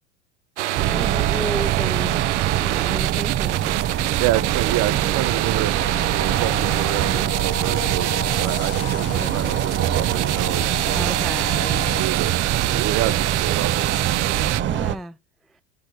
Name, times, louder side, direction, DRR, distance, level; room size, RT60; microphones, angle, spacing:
sound 1, 0.6-14.6, right 16 dB, 80° right, 0.6 m, -26 dB
sound 2, 0.7-14.9, right 11 dB, 35° right, 0.7 m, -24 dB
voice 1, 0.8-2.2 2.6-3.6 9.1-9.6 10.9-12.0 14.6-15.2, equal, ahead, 0.3 m, -33 dB
voice 2, 4.2-10.8 11.5-13.9, right 15 dB, 50° right, 1.1 m, -28 dB
sound 3, 5.8-12.0, left 15 dB, 45° left, 0.7 m, -36 dB
10.5 x 4.3 x 3.4 m
hypercardioid pair, 85°, 34 cm